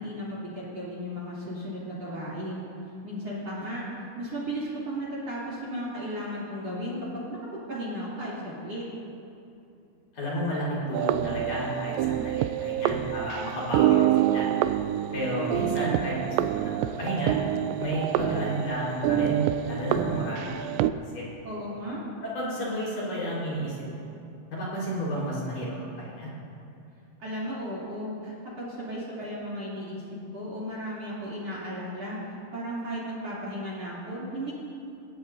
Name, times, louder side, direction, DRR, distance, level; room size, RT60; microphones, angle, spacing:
voice 1, 0.0-2.7 3.0-3.8 4.2-7.4 7.7-8.8 21.4-22.0 27.2-30.0 30.3-34.5, equal, 40° right, -7 dB, 3.7 m, -35 dB
voice 2, 10.1-14.0 14.3-14.5 15.1-17.4 17.8-20.8 21.1-21.3 22.2-24.0 24.5-26.3, equal, 50° left, -6 dB, 5.9 m, -31 dB
sound 1, 10.9-20.9, right 12 dB, 85° right, 2.6 m, -27 dB
28.5 x 15.5 x 2.7 m, 2.6 s
omnidirectional pair, 5.3 m